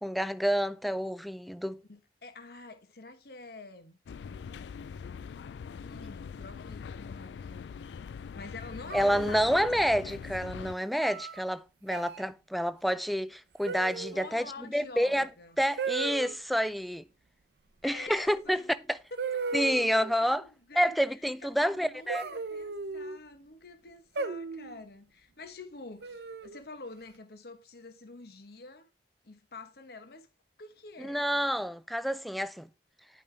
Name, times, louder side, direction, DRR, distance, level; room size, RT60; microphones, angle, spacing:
voice 1, 0.0-1.8 8.9-15.3 15.6-17.0 17.8-19.0 19.5-20.5 20.8-22.2 31.0-32.7, equal, ahead, 0.3 m, -29 dB
voice 2, 1.9-4.0 5.8-7.7 8.3-9.7 14.1-15.6 17.8-18.8 19.3-21.0 21.5-28.9 29.2-30.3 30.6-31.2, left 3 dB, 60° left, 1.1 m, -47 dB
sound 1, 4.1-10.8, left 6 dB, 80° left, 0.3 m, -42 dB
sound 2, 8.9-9.8 11.0-11.4 11.9-12.2 13.6-14.3 15.8-16.4 18.3-18.4 19.2-20.1 22.1-23.2 24.1-24.8 26.0-26.6, right 4 dB, 70° right, 0.6 m, -36 dB
10.5 x 5.4 x 3.3 m
head